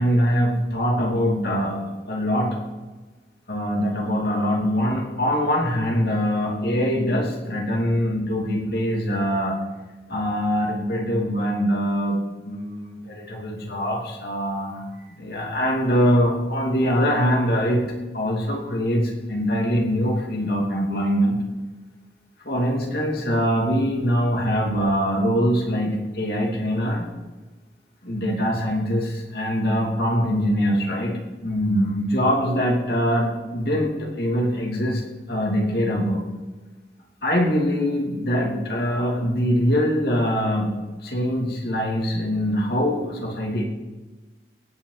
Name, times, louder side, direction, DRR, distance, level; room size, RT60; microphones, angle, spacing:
voice 1, 0.0-2.6 3.5-9.6 10.1-12.2 12.4-14.8 15.2-17.8 18.1-21.4 22.4-27.1 28.0-31.1 31.4-35.0 35.3-36.2 37.2-40.7 41.0-43.6, equal, 60° left, -1 dB, 2.7 m, -23 dB
17.0 x 8.8 x 4.1 m, 1.2 s
head